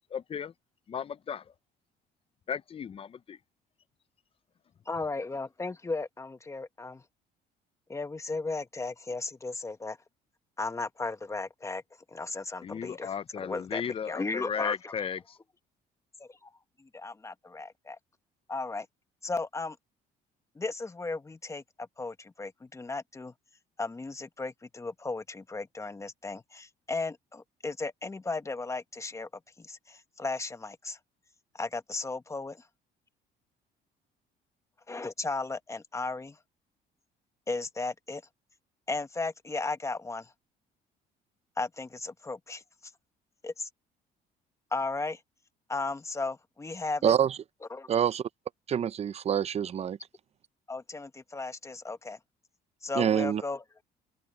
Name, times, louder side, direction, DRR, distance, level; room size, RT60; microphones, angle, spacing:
voice 1, 0.1-0.5 0.9-1.4 2.5-3.4 12.6-15.4, left 7 dB, 35° left, 0.6 m, -35 dB
voice 2, 4.8-7.0 7.9-10.0 10.6-11.8 12.1-14.9 16.2-16.5 16.8-18.0 18.5-18.9 19.2-19.8 20.5-23.3 23.8-29.3 29.6-31.0 31.5-32.6 34.9-36.4 37.5-38.2 38.9-40.3 41.6-42.6 43.4-43.7 44.7-45.2 45.7-47.2 47.7-47.9 50.7-52.2 52.8-53.8, left 3 dB, 15° left, 1.4 m, -35 dB
voice 3, 47.9-48.2 48.7-50.0 53.0-53.4, right 9 dB, 40° right, 0.6 m, -26 dB
cardioid pair, 110°, 17 cm